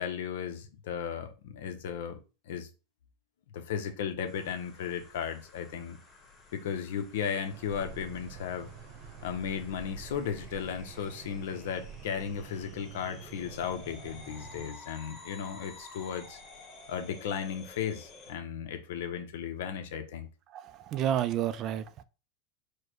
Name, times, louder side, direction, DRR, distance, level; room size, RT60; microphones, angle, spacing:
voice 1, 0.0-2.2 2.5-2.7 3.5-6.0 6.5-8.7 9.2-16.4 16.9-20.3, left 8 dB, 80° left, 0.8 m, -35 dB
sound 1, 4.3-18.3, left 3 dB, 25° left, 1.4 m, -52 dB
sound 2, 7.5-14.7, right 7 dB, 55° right, 0.9 m, -47 dB
voice 2, 20.5-22.0, right 10 dB, 40° right, 0.4 m, -30 dB
4.7 x 2.2 x 4.6 m
supercardioid pair, 145°, 0 cm